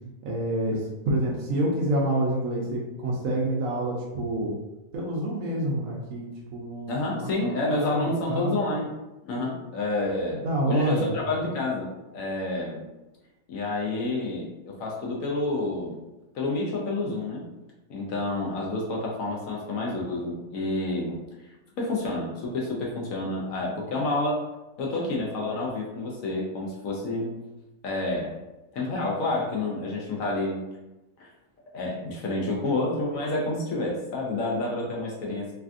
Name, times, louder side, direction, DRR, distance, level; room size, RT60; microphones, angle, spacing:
voice 1, 0.2-4.5 4.9-8.5 10.4-11.1, right 1 dB, 70° right, -2 dB, 0.8 m, -28 dB
voice 2, 6.9-8.9 9.2-12.8 13.5-16.0 16.3-17.5 17.9-21.2 21.8-24.4 24.8-27.3 27.8-28.3 28.7-30.6 31.2-31.3 31.7-35.5, left 2 dB, 65° left, -2 dB, 0.9 m, -29 dB
3.3 x 2.4 x 2.4 m, 1.0 s
omnidirectional pair, 1.7 m